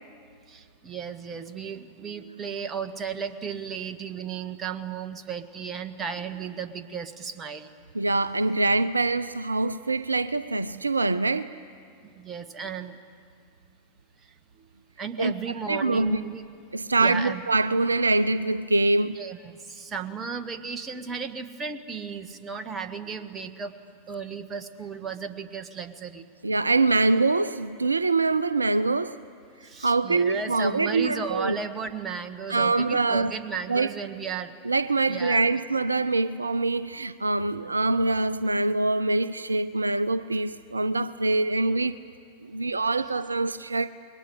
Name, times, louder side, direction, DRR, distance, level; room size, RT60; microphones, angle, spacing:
voice 1, 0.5-7.7 12.0-13.0 14.2-14.7 15.0-16.4 16.9-17.4 19.1-23.7 24.1-26.3 29.6-34.6 35.0-35.4 37.6-37.7, right 6 dB, 20° right, 1.6 m, -35 dB
voice 2, 7.9-11.5 15.2-15.3 15.7-16.2 16.7-19.2 26.4-29.2 29.8-31.5 32.5-33.3 33.7-33.9 34.6-42.0 42.4-43.9, right 3 dB, 80° right, 0.6 m, -24 dB
28.5 x 22.0 x 8.4 m
figure-of-eight pair, 90°, 0 cm